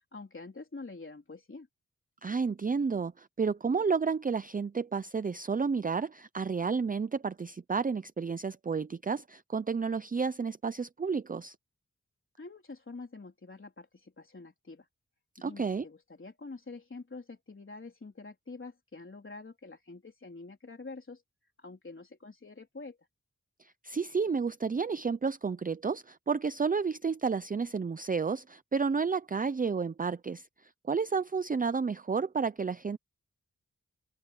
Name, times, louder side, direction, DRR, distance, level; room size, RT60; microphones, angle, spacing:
voice 1, 0.1-1.7 12.4-14.9 15.4-21.2 21.6-23.1, left 3 dB, 40° left, 3.9 m, -46 dB
voice 2, 2.2-11.5 15.4-15.8 23.6-30.5 30.9-33.0, right 5 dB, 30° right, 0.5 m, -31 dB
open air
wide cardioid pair, 90°, 30 cm